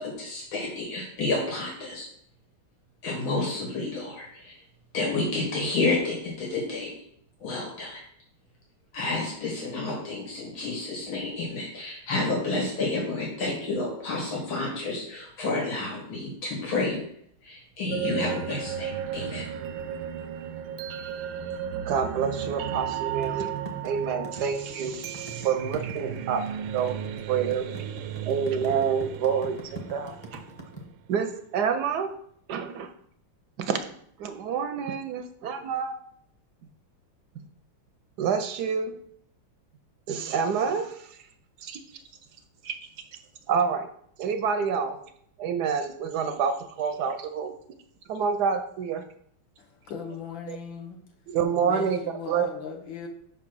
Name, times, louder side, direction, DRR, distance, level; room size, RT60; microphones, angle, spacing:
voice 1, 0.0-2.1 3.0-4.6 4.9-6.9 7.4-8.0 8.9-17.0 17.4-19.4, left 2 dB, 85° left, -2 dB, 2.8 m, -30 dB
sound 1, 17.9-30.9, right 9 dB, 90° right, 1.4 m, -35 dB
voice 2, 21.9-23.5 23.8-26.4 26.7-27.0 27.3-27.7 28.2-30.4 31.1-32.1 32.5-32.9 33.6-33.8 34.2-36.0 38.2-39.0 40.1-41.2 41.6-41.8 42.6-42.8 43.5-43.9 44.2-45.0 45.4-47.5 48.1-49.0 50.5-50.6 51.3-52.0 52.3-52.5, right 6 dB, 70° right, 8 dB, 1.0 m, -28 dB
sound 2, 23.2-30.8, right 1 dB, 20° left, 0.7 m, -41 dB
voice 3, 49.6-51.0 51.6-53.1, left 6 dB, 70° left, 3 dB, 1.6 m, -38 dB
5.5 x 4.9 x 6.1 m, 0.68 s
omnidirectional pair, 2.2 m